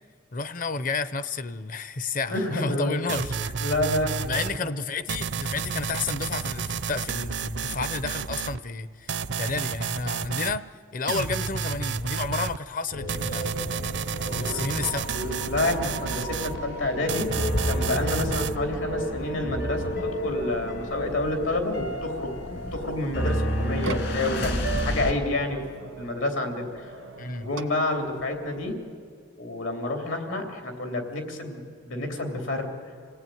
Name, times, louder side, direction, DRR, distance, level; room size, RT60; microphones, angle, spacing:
voice 1, 0.3-3.6 4.3-10.6 10.9-13.5 14.3-15.2 27.2-27.5, left 4 dB, 45° left, 14 dB, 0.7 m, -31 dB
voice 2, 2.3-3.0 3.6-4.3 4.6-4.7 14.3-19.9 20.2-22.3 22.7-24.6 24.8-25.6 26.0-26.9 27.4-28.8 29.4-32.7, left 2 dB, 80° left, 4 dB, 3.4 m, -29 dB
sound 1, 3.1-4.6 5.1-8.6 9.1-10.6 11.1-12.6 13.1-16.6 17.1-18.6, right 6 dB, 65° right, 0.6 m, -31 dB
sound 2, 12.9-25.1, equal, 65° left, 2.6 m, -30 dB
sound 3, 22.7-28.7, right 3 dB, 90° right, 1.5 m, -42 dB
27.5 x 17.5 x 9.3 m, 2.1 s
head